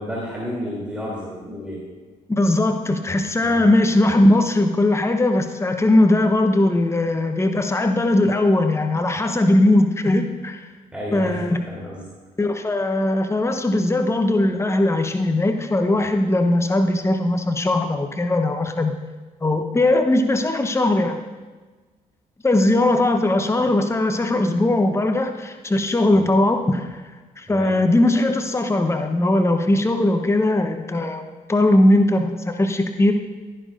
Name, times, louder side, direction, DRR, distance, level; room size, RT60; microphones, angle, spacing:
voice 1, 0.0-1.9 3.4-3.7 10.9-12.0 26.1-26.2 27.5-27.8, equal, 5° right, -5 dB, 3.0 m, -31 dB
voice 2, 2.3-10.6 11.1-11.6 12.4-18.9 19.4-21.2 22.4-27.0 27.4-31.2 31.5-33.1, left 1 dB, 15° left, 6 dB, 0.9 m, -19 dB
12.0 x 11.0 x 2.6 m, 1.3 s
hypercardioid pair, 45°, 18 cm